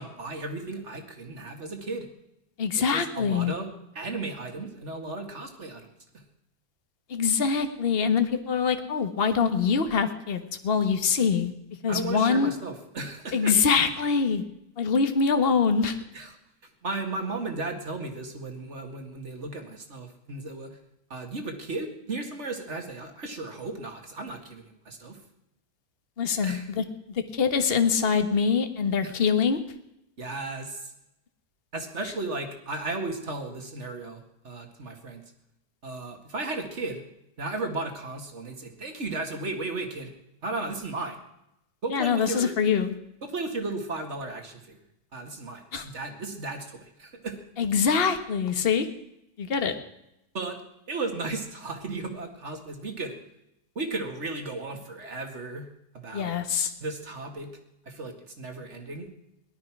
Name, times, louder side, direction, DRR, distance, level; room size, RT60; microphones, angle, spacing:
voice 1, 0.0-2.1 2.9-3.7 4.0-5.8 11.9-13.6 16.1-16.3 16.8-20.8 21.1-25.2 26.4-26.6 29.0-29.1 30.2-30.9 31.7-35.2 35.8-37.0 37.4-40.1 40.4-41.2 41.8-42.5 43.2-44.8 45.1-47.4 50.3-50.6 50.9-53.2 53.8-55.7 55.9-56.4 56.8-57.5 57.9-59.1, right 3 dB, 45° right, 5 dB, 2.3 m, -35 dB
voice 2, 2.6-3.5 7.1-11.5 11.8-12.5 13.3-14.4 14.8-16.0 26.2-29.6 41.9-43.0 45.7-45.9 47.6-48.9 49.4-49.8 56.1-56.7, left 6 dB, 40° left, 8 dB, 1.4 m, -24 dB
18.5 x 12.0 x 6.0 m, 0.84 s
omnidirectional pair, 1.8 m